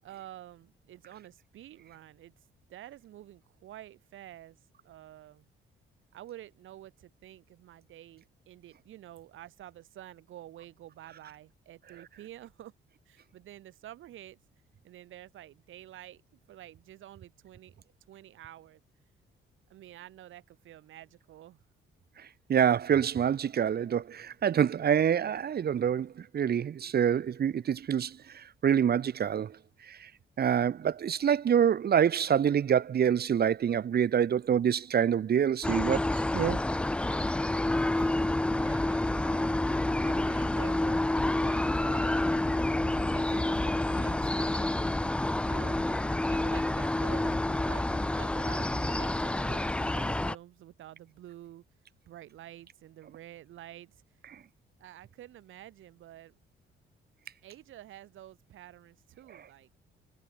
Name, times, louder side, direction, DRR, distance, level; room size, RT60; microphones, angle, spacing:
voice 1, 0.0-2.3 2.7-4.6 4.8-5.5 6.1-12.7 13.1-14.4 14.8-16.2 16.5-17.7 18.1-18.8 19.7-21.6 38.0-42.3 42.5-45.0 45.5-51.6 52.1-54.0 54.8-56.4 57.4-59.7, right 13 dB, 80° right, 7.8 m, -49 dB
voice 2, 22.5-29.6 29.9-30.1 30.4-36.6, right 8 dB, 50° right, 1.7 m, -26 dB
sound 1, 35.6-50.3, left 1 dB, 5° left, 0.3 m, -28 dB
cardioid pair, 90°, 20 cm